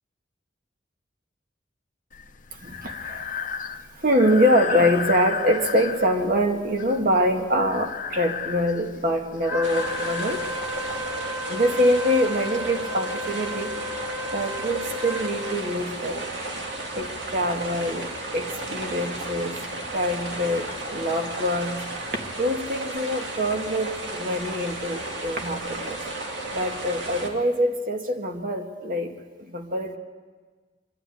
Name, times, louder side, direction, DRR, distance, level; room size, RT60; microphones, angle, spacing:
Breathing, 2.1-11.1, left 6 dB, 45° left, 0.9 m, -34 dB
voice 1, 2.5-3.6 4.0-10.4 11.5-13.8 14.3-16.3 16.9-19.6 19.9-21.8 22.4-26.0 26.5-30.0, equal, 50° right, 3 dB, 1.9 m, -24 dB
Wind instrument woodwind instrument, 9.5-15.8, left 1 dB, 10° right, 0.7 m, -34 dB
sound 1, 9.6-27.3, right 2 dB, 75° right, 2.5 m, -34 dB
24.5 x 11.5 x 9.5 m, 1.4 s
head